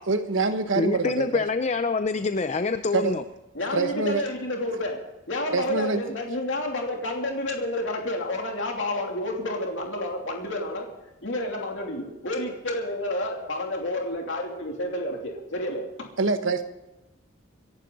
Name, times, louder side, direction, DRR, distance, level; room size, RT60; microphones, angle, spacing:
voice 1, 0.1-1.5 2.9-3.1 3.7-4.2 5.5-6.0 16.2-16.6, right 3 dB, 75° right, 8 dB, 1.3 m, -25 dB
voice 2, 0.8-3.2, left 4 dB, 35° left, 10 dB, 0.5 m, -25 dB
voice 3, 3.5-5.0 5.3-10.9 11.2-16.1, left 1 dB, 70° left, 1 dB, 2.9 m, -30 dB
27.0 x 11.5 x 3.9 m, 1.0 s
head